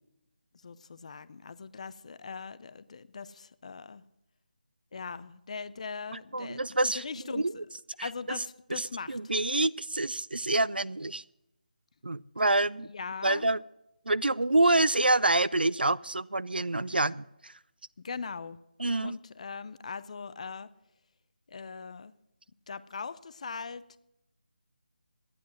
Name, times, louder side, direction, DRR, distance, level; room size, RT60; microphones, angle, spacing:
voice 1, 0.6-4.0 4.9-6.6 6.9-7.6 8.0-9.2 12.9-13.5 18.0-18.6 19.0-20.7 21.5-22.1 22.7-24.0, left 5 dB, 45° left, 15 dB, 0.5 m, -40 dB
voice 2, 6.3-7.4 8.0-8.4 8.7-11.2 12.0-12.9 13.2-13.6 14.1-17.5 18.8-19.2, right 2 dB, 90° right, 19 dB, 0.5 m, -27 dB
12.5 x 10.0 x 6.2 m, 0.89 s
figure-of-eight pair, 160°, 5 cm